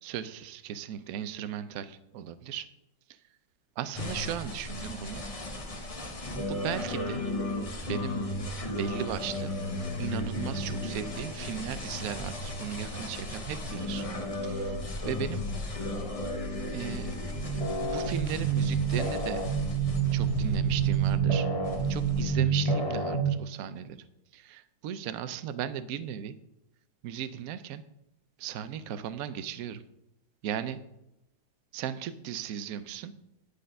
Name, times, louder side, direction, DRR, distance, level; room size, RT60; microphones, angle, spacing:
voice 1, 0.0-2.7 3.8-5.2 6.5-7.2 7.8-8.2 8.7-9.5 10.0-14.1 14.4-14.8 15.1-15.5 16.7-17.1 17.8-19.4 20.1-21.5 21.9-24.0 24.3-26.4 27.0-27.8 28.4-29.8 30.4-30.8 31.7-33.1, right 9 dB, 70° right, 13 dB, 0.8 m, -36 dB
sound 1, 3.9-23.3, right 3 dB, 35° left, 0.6 m, -31 dB
10.0 x 5.1 x 5.3 m, 0.86 s
omnidirectional pair, 2.1 m